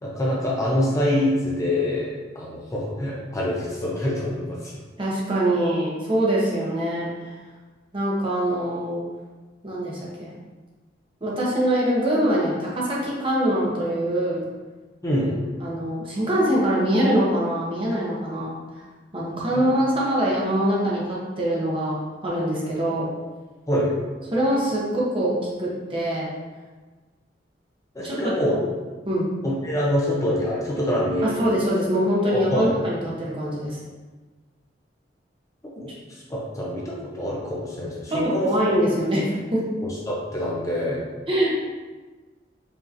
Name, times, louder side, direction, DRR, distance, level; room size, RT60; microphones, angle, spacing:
voice 1, 0.0-4.8 15.0-15.4 19.5-19.6 23.7-24.0 27.9-28.6 29.4-31.4 32.3-32.8 35.8-38.5 39.8-41.0, left 1 dB, 20° left, -4 dB, 0.6 m, -25 dB
voice 2, 5.0-7.1 7.9-9.0 9.6-10.3 11.2-14.4 15.6-18.5 19.1-23.1 24.3-26.3 28.0-28.4 29.1-29.3 31.2-33.8 38.1-39.7 41.3-41.6, equal, 30° right, -5 dB, 0.9 m, -23 dB
5.0 x 2.9 x 2.5 m, 1.3 s
head